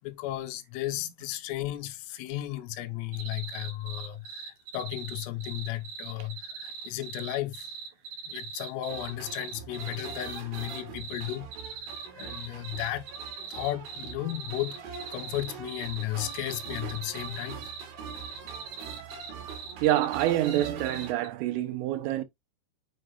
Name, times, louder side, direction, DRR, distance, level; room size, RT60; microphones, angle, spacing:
voice 1, 0.0-7.7 8.3-11.5 12.2-13.0 13.5-14.8 15.1-17.6, left 14 dB, 90° left, 3.7 m, -34 dB
sound 1, 3.1-21.3, right 6 dB, 55° right, 2.7 m, -41 dB
sound 2, 8.9-21.1, right 6 dB, 70° right, 4.8 m, -44 dB
voice 2, 19.8-22.2, right 14 dB, 85° right, 3.6 m, -26 dB
7.7 x 7.2 x 2.4 m
omnidirectional pair, 5.7 m